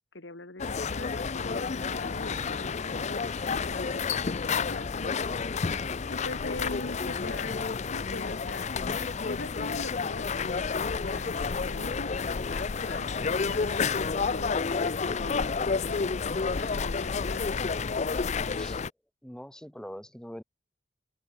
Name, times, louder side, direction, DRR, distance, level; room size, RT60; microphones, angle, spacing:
voice 1, 0.1-5.3 6.1-8.7 9.2-17.6, left 2 dB, 75° left, 2.5 m, -42 dB
sound 1, 0.6-18.9, left 5 dB, 35° left, 0.5 m, -30 dB
sound 2, 10.6-18.4, right 2 dB, 75° right, 3.5 m, -58 dB
voice 2, 19.2-20.4, equal, 5° left, 0.9 m, -43 dB
open air
head